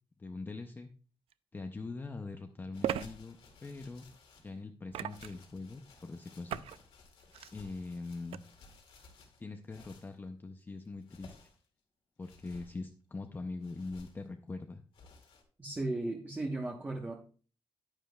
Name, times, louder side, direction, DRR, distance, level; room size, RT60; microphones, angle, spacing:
voice 1, 0.2-0.9 1.5-3.4 3.6-4.1 4.4-6.7 7.5-8.5 9.4-11.4 12.2-14.8, left 3 dB, 20° left, 5 dB, 0.5 m, -42 dB
sound 1, 1.3-1.4 2.8-3.1 4.9-5.4 6.5-6.8 7.2-7.5 8.3-8.4, right 10 dB, 90° right, 0.4 m, -36 dB
sound 2, 2.7-4.6 5.1-10.1 10.8-11.7 12.2-12.8 13.6-14.3 14.9-15.4, left 3 dB, 80° left, 2.2 m, -57 dB
voice 2, 15.6-17.1, right 2 dB, 20° right, 1 dB, 1.0 m, -36 dB
10.0 x 9.9 x 2.3 m, 0.40 s
wide cardioid pair, 150°, 10 cm